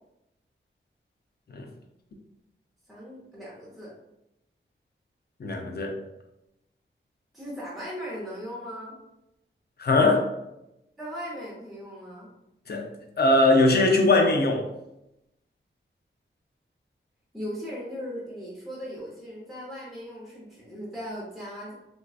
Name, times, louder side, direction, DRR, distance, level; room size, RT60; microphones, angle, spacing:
voice 1, 2.9-3.9 7.3-9.0 11.0-12.3 17.3-21.7, equal, ahead, -7 dB, 0.7 m, -38 dB
voice 2, 5.4-6.0 9.8-10.3 12.7-12.9 13.2-14.7, left 2 dB, 55° left, 2 dB, 0.5 m, -21 dB
3.6 x 2.3 x 2.3 m, 0.87 s
wide cardioid pair, 115°, 21 cm